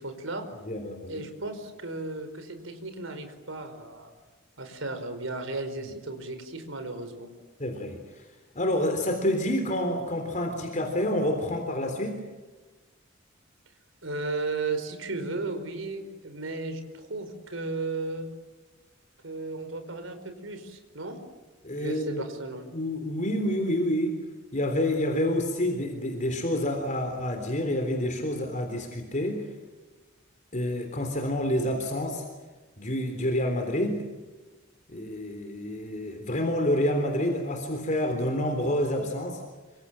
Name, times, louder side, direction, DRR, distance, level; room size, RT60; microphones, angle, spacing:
voice 1, 0.0-0.4 1.1-4.1 4.6-7.3 14.0-18.3 19.2-21.2 21.7-22.7, right 3 dB, 75° right, 8 dB, 4.8 m, -35 dB
voice 2, 0.6-1.2 7.6-8.3 8.6-12.2 21.6-22.2 22.7-24.2 24.5-29.5 30.5-32.3 32.8-34.0 34.9-39.4, left 1 dB, 40° left, 4 dB, 3.6 m, -28 dB
27.5 x 26.0 x 7.7 m, 1.2 s
head